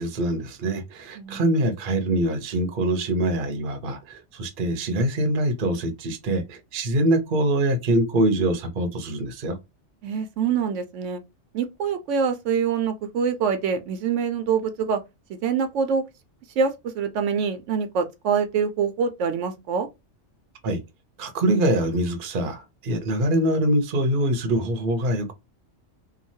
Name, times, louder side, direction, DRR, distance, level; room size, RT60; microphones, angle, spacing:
voice 1, 0.0-9.6 20.6-20.8 21.2-25.3, right 1 dB, 50° right, 0.8 m, -24 dB
voice 2, 1.2-1.5 10.0-11.2 11.5-15.0 15.3-16.1 16.6-19.9, right 6 dB, 85° right, 1.0 m, -25 dB
2.9 x 2.3 x 2.6 m
omnidirectional pair, 1.2 m